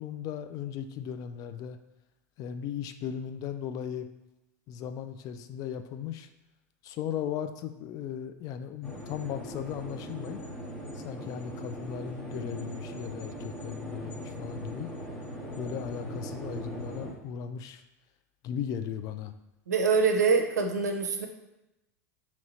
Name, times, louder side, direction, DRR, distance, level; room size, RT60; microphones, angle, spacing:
voice 1, 0.0-1.8 2.4-4.1 4.7-6.3 6.8-10.4 10.9-14.9 15.6-17.8 18.4-19.3, left 9 dB, 45° left, 10 dB, 0.3 m, -37 dB
sound 1, 8.8-17.1, equal, 10° left, 1.0 m, -40 dB
voice 2, 19.7-21.3, right 4 dB, 85° right, 4 dB, 0.5 m, -24 dB
2.9 x 2.7 x 4.2 m, 0.94 s
hypercardioid pair, 90°, 9 cm